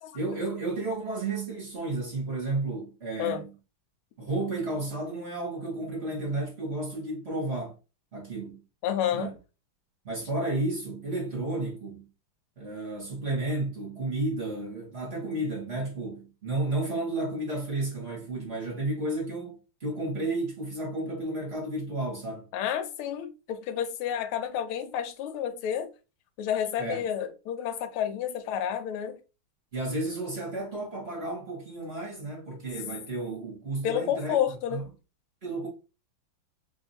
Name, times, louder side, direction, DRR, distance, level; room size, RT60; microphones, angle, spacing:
voice 1, 0.1-3.5 4.2-7.7 8.1-8.6 9.1-9.3 10.0-12.0 12.6-22.5 26.8-27.1 29.7-34.3 34.7-34.8 35.4-35.7, right 2 dB, 35° right, 1.2 m, -32 dB
voice 2, 8.8-9.3 22.5-25.9 26.4-29.2 33.8-34.8, left 9 dB, 80° left, 1.5 m, -30 dB
3.3 x 2.6 x 4.1 m
omnidirectional pair, 2.4 m